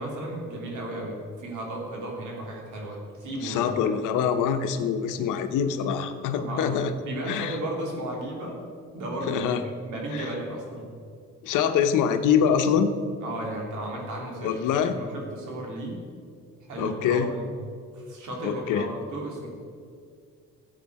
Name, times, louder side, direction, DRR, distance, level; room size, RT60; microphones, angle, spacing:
voice 1, 0.0-3.8 6.3-6.7 7.0-8.6 8.9-10.9 13.2-16.0 16.7-17.4 17.9-19.5, right 1 dB, 80° right, -1 dB, 3.1 m, -34 dB
voice 2, 3.4-6.9 7.3-7.6 9.3-9.6 10.1-10.2 11.4-12.9 14.4-15.0 16.8-17.3 18.4-18.8, left 7 dB, 90° left, 8 dB, 0.9 m, -24 dB
14.5 x 8.2 x 4.7 m, 2.3 s
cardioid pair, 90°, 30 cm